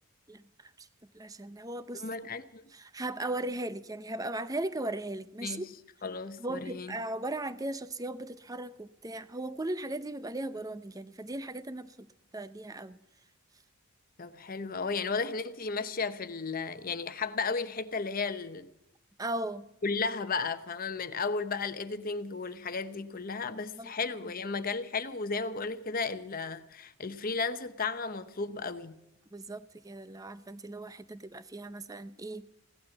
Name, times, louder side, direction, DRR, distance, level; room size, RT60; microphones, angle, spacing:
voice 1, 0.3-0.9 1.1-2.0 2.7-5.7 6.4-12.1 12.3-13.0 19.2-19.7 23.8-23.9 24.2-24.3 29.3-32.5, right 2 dB, 15° right, 0.6 m, -37 dB
voice 2, 1.9-2.6 5.4-5.7 6.0-7.0 14.2-18.7 19.8-29.0, left 4 dB, 40° left, 0.8 m, -34 dB
17.0 x 12.0 x 7.2 m
head